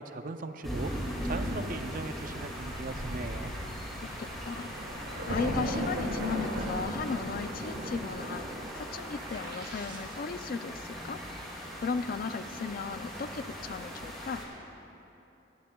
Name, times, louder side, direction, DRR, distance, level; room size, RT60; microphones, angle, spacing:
voice 1, 0.0-3.5, right 3 dB, 40° right, 8 dB, 0.5 m, -39 dB
sound 1, 0.6-14.5, equal, ahead, 2.0 m, -40 dB
Thunder, 2.3-2.4 2.7-8.5, equal, 85° right, 2.2 m, -36 dB
voice 2, 4.0-4.7 5.3-8.5 8.7-11.2 11.8-14.4, left 5 dB, 45° left, 11 dB, 0.3 m, -36 dB
sound 2, 7.0-10.5, right 2 dB, 20° right, 1.1 m, -48 dB
18.5 x 13.5 x 2.3 m, 3.0 s
head